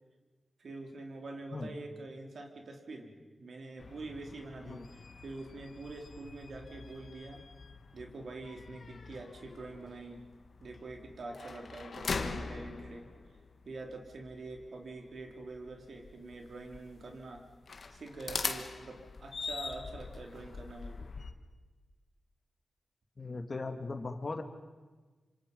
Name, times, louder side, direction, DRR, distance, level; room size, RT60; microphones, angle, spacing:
voice 1, 0.6-7.5 7.9-10.2 10.6-13.1 13.7-17.5 17.9-21.1, right 2 dB, 70° right, 2 dB, 3.5 m, -45 dB
sound 1, 3.8-21.3, left 4 dB, 60° left, 1.6 m, -43 dB
voice 2, 23.2-24.4, left 3 dB, 45° left, 5 dB, 2.4 m, -38 dB
27.5 x 26.5 x 5.5 m, 1.3 s
cardioid pair, 70°, 0 cm